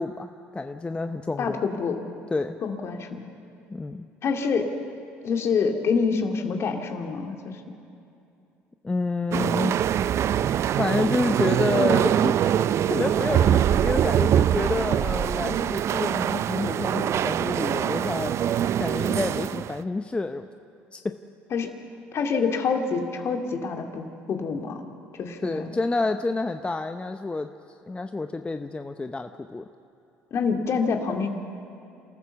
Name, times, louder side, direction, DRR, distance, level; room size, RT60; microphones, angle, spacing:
voice 1, 0.0-1.6 2.3-2.6 3.7-4.1 8.8-9.8 10.8-12.5 12.9-18.4 18.8-20.5 20.9-21.2 25.4-27.5 27.9-29.6, left 3 dB, 20° left, 8 dB, 0.7 m, -28 dB
voice 2, 1.4-2.0 2.6-3.2 4.2-4.7 5.2-7.6 21.5-21.7 22.1-24.8 25.2-25.7 30.3-31.3, left 5 dB, 50° left, 4 dB, 2.3 m, -26 dB
sound 1, 9.3-19.8, right 10 dB, 55° right, 0.5 m, -23 dB
27.5 x 14.0 x 7.1 m, 2.7 s
hypercardioid pair, 70°, 6 cm